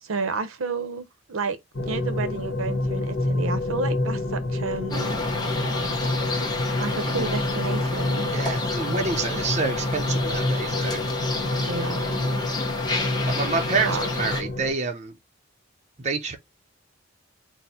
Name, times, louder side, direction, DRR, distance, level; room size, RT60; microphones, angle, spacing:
voice 1, 0.0-1.6 1.9-5.2 6.8-8.3 11.7-12.4 13.8-14.0, right 4 dB, 80° right, 0.7 m, -31 dB
sound 1, 1.7-14.7, left 2 dB, 55° left, 1.0 m, -28 dB
sound 2, 4.9-14.4, left 2 dB, 20° left, 0.8 m, -30 dB
voice 2, 8.3-11.1 13.3-15.1 16.0-16.4, right 4 dB, 35° right, 0.6 m, -28 dB
4.2 x 2.1 x 4.2 m
head